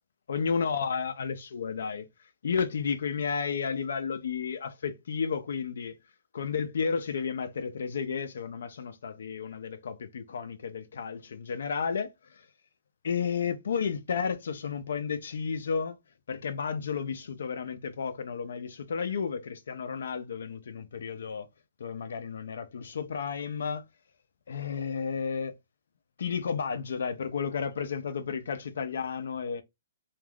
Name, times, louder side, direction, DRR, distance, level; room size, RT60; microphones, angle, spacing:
voice 1, 0.3-2.1 2.4-6.0 6.3-12.5 13.0-16.0 16.3-21.5 21.8-23.8 24.5-25.5 26.2-29.6, left 6 dB, 75° left, 0.4 m, -32 dB
2.4 x 2.2 x 3.3 m
hypercardioid pair, 165°, 0 cm